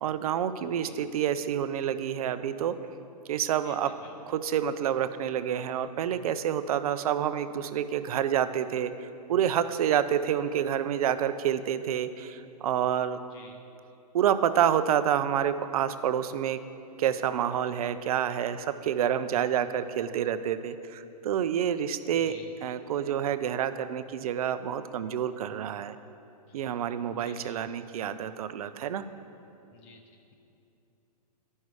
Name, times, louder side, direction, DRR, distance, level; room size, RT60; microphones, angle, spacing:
voice 1, 0.0-2.7 3.3-3.9 4.3-13.2 14.1-16.6 17.0-26.0 26.5-29.0, right 9 dB, 65° right, 12 dB, 0.5 m, -28 dB
voice 2, 0.6-1.0 3.6-4.2 13.2-13.6 19.2-19.6 22.1-22.5 26.5-27.6 29.7-30.3, left 4 dB, 35° left, 2 dB, 0.9 m, -53 dB
11.0 x 5.4 x 4.7 m, 2.8 s
hypercardioid pair, 140°, 20 cm